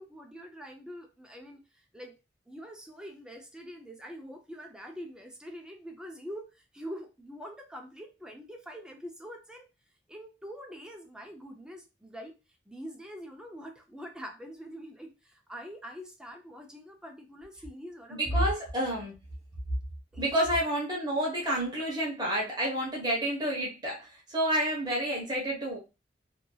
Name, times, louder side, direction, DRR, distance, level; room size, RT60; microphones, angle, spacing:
voice 1, 0.0-1.6 1.9-2.1 2.5-6.5 6.7-9.6 10.1-12.4 12.7-18.5 20.1-20.5 24.5-24.6, equal, 5° right, 2 dB, 0.5 m, -44 dB
voice 2, 18.1-19.1 20.2-25.8, right 1 dB, 25° right, -3 dB, 1.1 m, -29 dB
2.9 x 2.7 x 2.3 m, 0.27 s
head